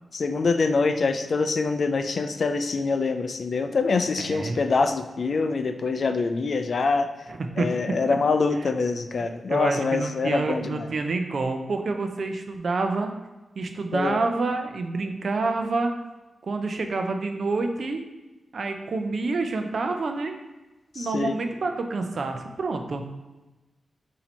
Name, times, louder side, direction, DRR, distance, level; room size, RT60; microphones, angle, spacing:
voice 1, 0.1-7.1 7.6-10.9 13.9-14.2 21.0-21.4, left 4 dB, 65° left, 8 dB, 0.3 m, -25 dB
voice 2, 4.2-4.6 7.3-8.0 8.6-8.7 9.5-13.1 13.6-15.9 16.4-18.0 18.5-20.4 20.9-23.0, right 3 dB, 65° right, 5 dB, 0.5 m, -28 dB
4.3 x 2.7 x 4.3 m, 1.1 s
cardioid pair, 75°, 0 cm